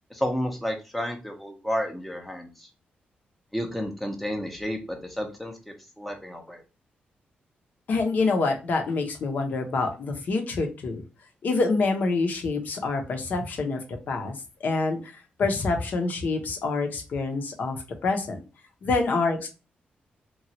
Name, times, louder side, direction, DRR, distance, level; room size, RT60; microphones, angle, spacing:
voice 1, 0.1-2.7 3.5-6.6, equal, ahead, 3 dB, 0.6 m, -31 dB
voice 2, 7.9-11.0 11.4-13.8 14.1-14.3 14.6-15.0 15.4-17.8 18.0-18.4 18.8-19.5, left 3 dB, 60° left, 4 dB, 0.7 m, -26 dB
3.0 x 2.3 x 2.7 m, 0.30 s
wide cardioid pair, 140°, 3 cm